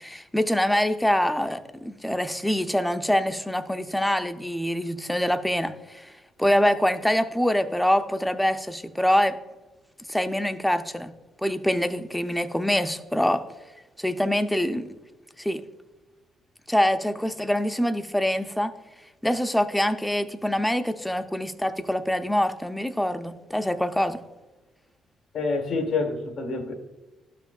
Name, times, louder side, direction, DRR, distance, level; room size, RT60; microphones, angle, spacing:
voice 1, 0.0-6.1 6.4-9.4 10.1-11.1 11.4-13.4 14.0-14.9 15.4-15.6 16.7-18.7 19.2-24.2, equal, 5° left, 9 dB, 0.6 m, -25 dB
voice 2, 25.3-26.7, left 3 dB, 70° left, 3 dB, 1.5 m, -27 dB
12.0 x 5.8 x 2.3 m, 1.2 s
cardioid pair, 85°, 0 cm